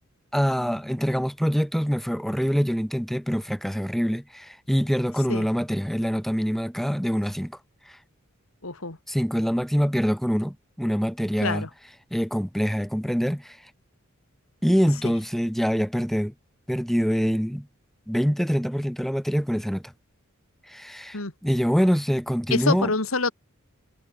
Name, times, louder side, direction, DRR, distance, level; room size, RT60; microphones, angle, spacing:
voice 1, 0.3-7.6 9.1-11.7 12.1-13.6 14.6-16.3 16.7-17.7 18.1-19.9 20.7-22.9, equal, ahead, 5.2 m, -25 dB
voice 2, 8.6-9.0 11.4-11.7 21.1-21.3 22.5-23.3, left 3 dB, 75° left, 2.7 m, -26 dB
head